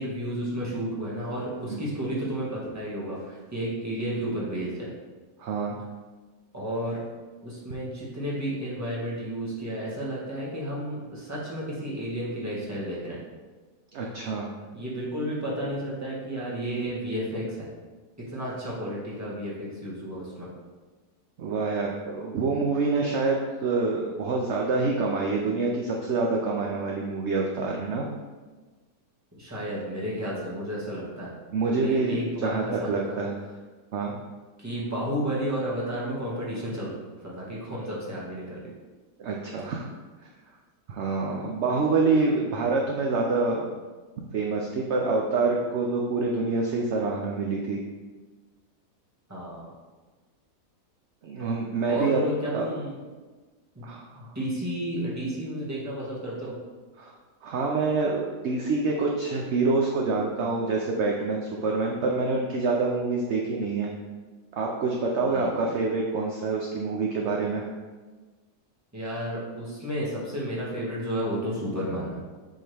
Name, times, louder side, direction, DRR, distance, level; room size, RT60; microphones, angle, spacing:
voice 1, 0.0-4.9 6.5-7.0 7.4-13.2 14.7-17.7 18.2-20.5 29.4-31.3 31.6-33.2 34.6-38.6 41.3-41.4 49.3-49.7 51.9-53.0 53.7-53.9 54.1-56.6 65.2-65.5 68.9-72.2, equal, 10° right, -6 dB, 1.5 m, -32 dB
voice 2, 5.4-5.8 13.9-14.5 21.4-28.1 31.5-33.3 33.9-34.2 39.2-39.9 40.9-43.6 44.3-47.8 51.2-52.2 52.5-52.7 53.8-54.2 57.0-57.1 57.4-63.9 64.5-67.6, right 3 dB, 65° right, 0 dB, 0.7 m, -26 dB
7.6 x 3.8 x 3.4 m, 1.3 s
omnidirectional pair, 1.7 m